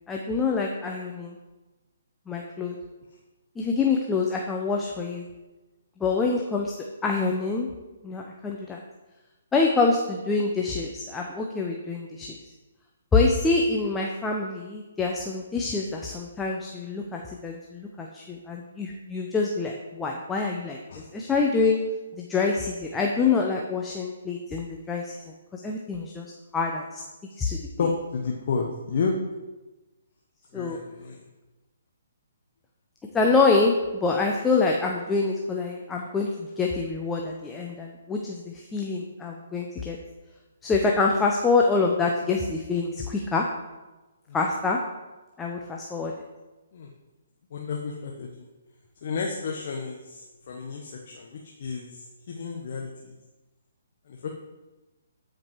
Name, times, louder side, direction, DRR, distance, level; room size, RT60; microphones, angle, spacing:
voice 1, 0.1-1.4 2.3-2.8 3.6-5.2 6.0-7.7 8.0-8.8 9.5-12.4 13.1-20.8 21.1-21.8 22.1-25.2 25.5-27.0 27.4-27.6 30.5-30.8 33.1-40.0 40.6-43.5 44.3-44.8 45.4-46.1, left 4 dB, 10° left, 0 dB, 0.9 m, -26 dB
voice 2, 27.3-29.1 30.5-31.2 46.7-46.9 47.5-48.5 49.0-53.1 54.1-54.3, left 5 dB, 50° left, 0 dB, 1.3 m, -32 dB
13.0 x 5.3 x 4.7 m, 1.1 s
figure-of-eight pair, 135°, 0 cm